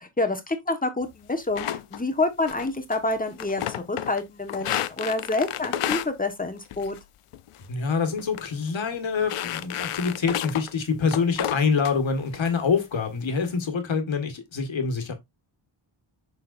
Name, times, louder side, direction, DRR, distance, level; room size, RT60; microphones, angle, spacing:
voice 1, 0.0-3.6 3.9-7.0, left 2 dB, 15° left, 1.3 m, -27 dB
sound 1, 1.6-2.0 2.5-3.0 3.3-4.2 4.5-6.1 6.7-7.0 7.3-7.7 8.2-8.4 8.7-8.8 9.2-10.7 11.1-11.9 12.3-12.5 12.9-13.4, left 11 dB, 90° left, 0.7 m, -31 dB
voice 2, 7.7-15.1, left 5 dB, 65° left, 1.8 m, -26 dB
6.6 x 6.3 x 2.6 m
wide cardioid pair, 155°, 49 cm